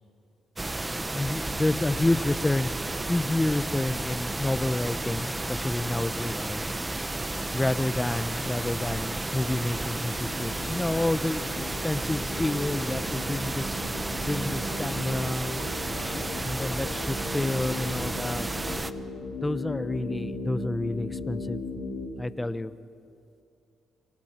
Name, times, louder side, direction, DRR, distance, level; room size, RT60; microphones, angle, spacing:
sound 1, 0.6-18.9, right 2 dB, 15° right, 0.9 m, -32 dB
voice 1, 1.1-2.7 3.1-6.6 7.5-13.8 14.3-15.6 16.0-18.4 19.4-21.6 22.2-22.7, left 2 dB, 15° left, 14 dB, 0.8 m, -29 dB
sound 2, 8.7-22.1, left 2 dB, 75° left, 5.2 m, -38 dB
30.0 x 26.5 x 4.5 m, 2.5 s
cardioid pair, 90°, 0 cm